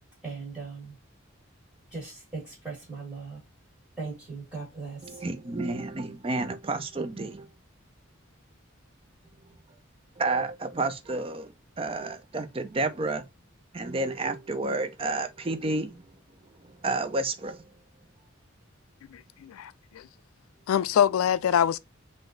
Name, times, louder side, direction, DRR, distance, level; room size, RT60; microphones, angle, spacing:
voice 1, 0.2-1.0 1.9-3.4 4.0-5.2, right 4 dB, 10° right, 1.8 m, -39 dB
voice 2, 5.0-7.5 10.2-13.3 13.7-16.1 16.6-17.7, right 2 dB, 25° right, 0.4 m, -31 dB
voice 3, 19.1-20.1 20.7-21.8, left 9 dB, 90° left, 0.3 m, -25 dB
3.8 x 2.6 x 3.7 m
head